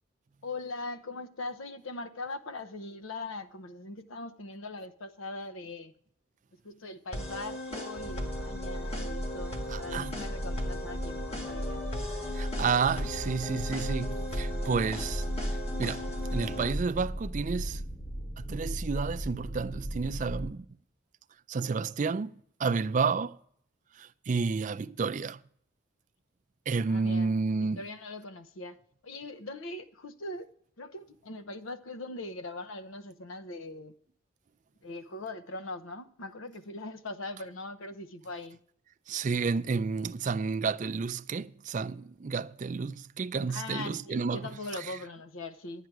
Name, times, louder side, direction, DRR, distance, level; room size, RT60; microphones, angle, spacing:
voice 1, 0.4-5.9 6.6-11.9 26.9-30.5 30.8-33.9 34.8-38.6 43.5-45.9, left 2 dB, 85° left, 0.8 m, -41 dB
sound 1, 7.1-16.7, left 1 dB, 30° left, 1.6 m, -38 dB
sound 2, 8.0-20.5, equal, 10° left, 0.6 m, -36 dB
voice 2, 9.7-10.1 12.3-15.2 15.8-16.0 16.3-17.8 18.4-20.7 21.5-23.4 24.0-25.4 26.7-27.8 39.1-44.5, right 5 dB, 40° right, 0.3 m, -31 dB
11.5 x 9.2 x 4.7 m
head